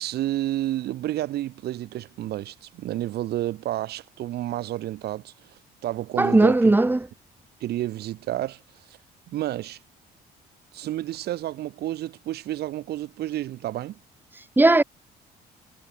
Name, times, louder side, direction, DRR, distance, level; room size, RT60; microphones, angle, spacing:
voice 1, 0.0-6.7 7.6-8.6 9.3-9.8 10.7-14.0, right 14 dB, 70° right, 7.1 m, -30 dB
voice 2, 6.2-7.0 14.6-14.8, right 2 dB, 10° right, 3.8 m, -17 dB
cardioid pair, 110°, 17 cm